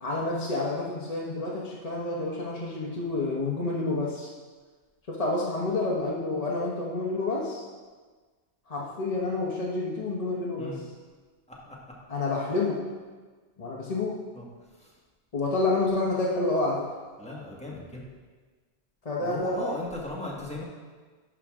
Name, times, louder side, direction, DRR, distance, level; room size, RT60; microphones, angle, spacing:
voice 1, 0.0-4.3 5.1-7.6 8.7-10.8 12.1-12.8 13.6-14.2 15.3-16.9 19.0-19.7, left 2 dB, 35° left, -4 dB, 1.1 m, -29 dB
voice 2, 17.2-18.0 19.2-20.6, left 1 dB, 5° left, -4 dB, 1.6 m, -37 dB
11.0 x 6.1 x 3.6 m, 1.4 s
omnidirectional pair, 1.2 m